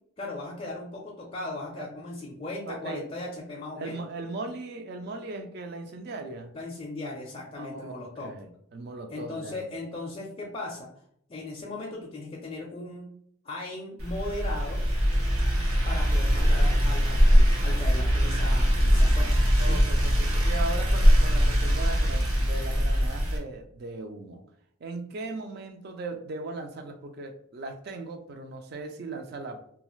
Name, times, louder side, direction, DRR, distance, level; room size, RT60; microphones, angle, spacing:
voice 1, 0.2-4.0 6.5-8.3 9.1-10.9 11.3-13.1 13.4-14.8 15.8-19.7, left 2 dB, 30° left, -3 dB, 0.4 m, -37 dB
voice 2, 2.7-3.1 3.8-6.6 7.6-9.7 19.6-24.4 24.8-29.6, right 3 dB, 50° right, 6 dB, 0.3 m, -38 dB
sound 1, 14.0-23.4, equal, 90° right, 0.8 m, -22 dB
2.4 x 2.3 x 3.0 m, 0.69 s
head